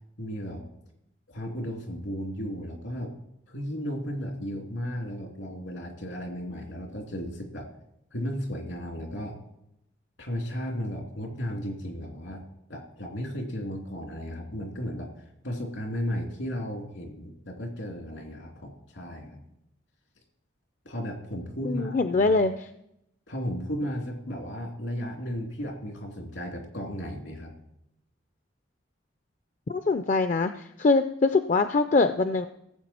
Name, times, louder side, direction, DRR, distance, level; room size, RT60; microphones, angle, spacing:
voice 1, 0.2-0.6 1.3-3.1 3.5-7.7 8.1-9.4 10.2-12.4 12.7-15.1 15.4-19.4 20.8-22.4 23.3-27.5, equal, 85° left, 2 dB, 2.9 m, -34 dB
voice 2, 21.7-22.5 29.7-32.5, left 3 dB, 40° left, 10 dB, 0.4 m, -23 dB
17.5 x 7.9 x 4.3 m, 0.80 s
head